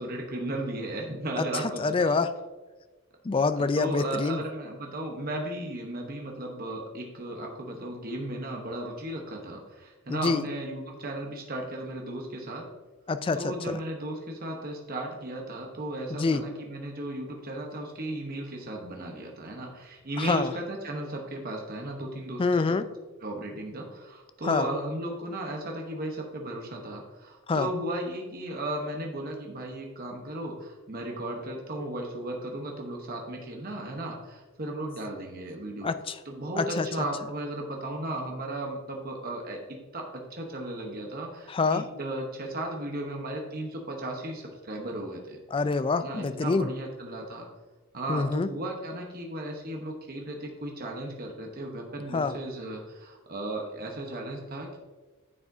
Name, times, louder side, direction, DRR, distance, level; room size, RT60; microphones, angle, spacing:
voice 1, 0.0-2.2 3.6-12.6 13.3-22.4 23.2-35.9 36.2-45.4 46.0-47.5 47.9-54.8, right 1 dB, 45° right, 1 dB, 1.0 m, -35 dB
voice 2, 1.4-2.3 3.2-4.4 10.1-10.4 13.1-13.8 16.1-16.4 20.2-20.5 22.4-22.9 24.4-24.7 27.5-27.7 35.8-36.2 36.6-36.9 41.5-41.8 45.5-46.7 48.1-48.5 52.1-52.4, left 4 dB, 25° left, 11 dB, 0.3 m, -26 dB
9.7 x 7.1 x 2.7 m, 1.3 s
head